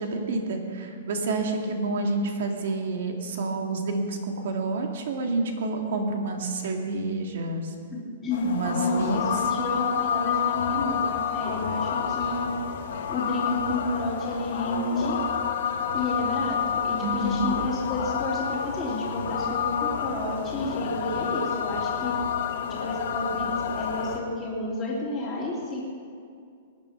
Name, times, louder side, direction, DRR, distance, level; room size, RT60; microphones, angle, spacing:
voice 1, 0.0-7.6 8.4-9.2 17.0-17.5, right 3 dB, 55° right, 3 dB, 2.1 m, -29 dB
voice 2, 8.2-12.5 13.1-15.2 15.9-22.1 22.7-23.5 23.7-25.9, left 2 dB, 10° left, -8 dB, 3.0 m, -30 dB
sound 1, 8.3-24.2, left 7 dB, 55° left, 1.2 m, -29 dB
19.0 x 10.5 x 5.9 m, 2.3 s
hypercardioid pair, 175°, 0 cm